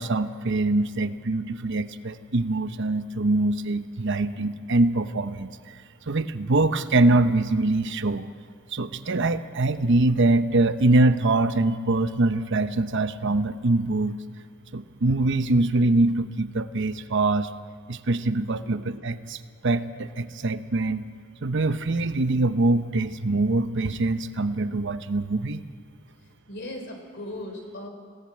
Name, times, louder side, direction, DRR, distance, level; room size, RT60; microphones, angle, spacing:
voice 1, 0.0-5.8 6.1-8.3 8.7-14.2 14.7-17.5 17.9-21.0 21.4-25.6, right 2 dB, 60° right, 10 dB, 0.9 m, -23 dB
voice 2, 26.5-27.9, left 1 dB, 60° left, 3 dB, 4.0 m, -37 dB
20.5 x 17.0 x 8.9 m, 2.1 s
head